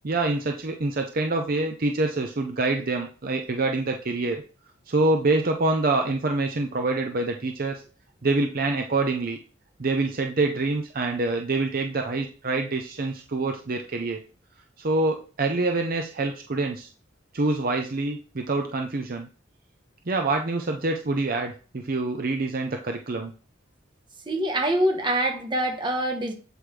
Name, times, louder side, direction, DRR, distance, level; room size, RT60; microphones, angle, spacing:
voice 1, 0.0-4.4 4.9-7.8 8.2-9.4 9.8-14.2 14.8-16.9 17.3-19.3 20.1-23.3, right 2 dB, 45° right, 3 dB, 0.6 m, -26 dB
voice 2, 24.3-26.3, right 1 dB, 25° right, 3 dB, 1.1 m, -25 dB
7.8 x 4.9 x 3.3 m, 0.38 s
head